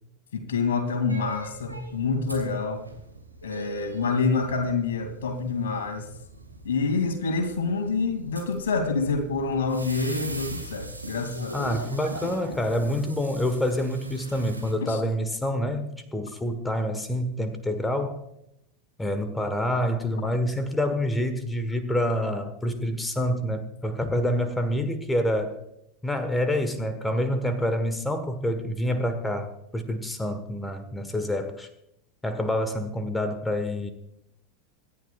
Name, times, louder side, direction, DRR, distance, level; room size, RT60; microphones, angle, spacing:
voice 1, 0.3-2.8 3.4-6.1 6.6-11.6 14.8-15.0, left 4 dB, 65° left, 2.6 m, -27 dB
sound 1, 1.1-14.7, right 2 dB, 90° right, 2.3 m, -41 dB
voice 2, 11.5-18.3 19.0-25.6 26.0-31.7 32.2-33.9, left 1 dB, 10° left, 1.4 m, -27 dB
26.5 x 11.0 x 2.4 m
figure-of-eight pair, 85°, 0 cm